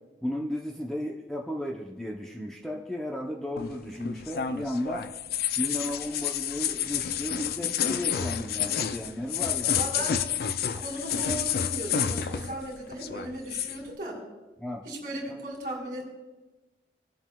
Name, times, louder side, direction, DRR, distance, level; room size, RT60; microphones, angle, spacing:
voice 1, 0.2-5.1 5.6-10.1 14.6-14.9, left 1 dB, 5° left, -1 dB, 0.5 m, -34 dB
sound 1, 3.6-12.7 12.9-13.8, left 8 dB, 55° left, 0.4 m, -30 dB
voice 2, 9.7-10.2 10.7-14.2 14.8-16.0, right 1 dB, 50° right, -1 dB, 2.4 m, -36 dB
17.5 x 7.5 x 2.3 m, 1.2 s
head